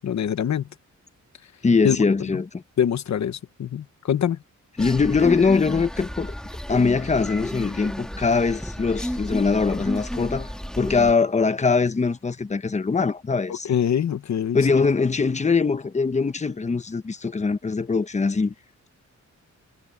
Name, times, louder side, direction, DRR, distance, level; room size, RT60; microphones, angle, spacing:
voice 1, 0.0-0.6 1.8-2.0 2.8-4.4 13.6-14.6, left 9 dB, 65° left, 1.1 m, -24 dB
voice 2, 1.6-2.6 4.8-6.3 6.7-10.5 10.8-13.7 14.5-18.5, left 4 dB, 25° left, 0.9 m, -22 dB
sound 1, 4.8-11.1, equal, ahead, 1.6 m, -32 dB
wide cardioid pair, 155°, 30 cm